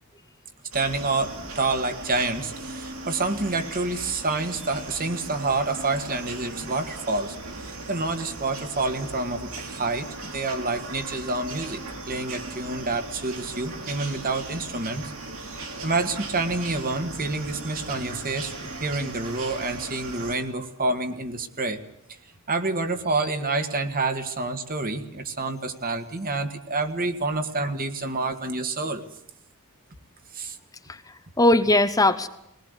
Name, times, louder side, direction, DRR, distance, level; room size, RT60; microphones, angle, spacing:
voice 1, 0.7-7.4 7.6-15.1 15.8-21.8 22.5-29.0 30.3-30.6, right 3 dB, 40° right, 7 dB, 1.9 m, -28 dB
sound 1, 0.7-20.3, right 2 dB, 65° right, 5.0 m, -38 dB
voice 2, 30.9-32.3, left 1 dB, 15° left, 9 dB, 0.9 m, -21 dB
21.0 x 19.0 x 8.2 m, 0.79 s
head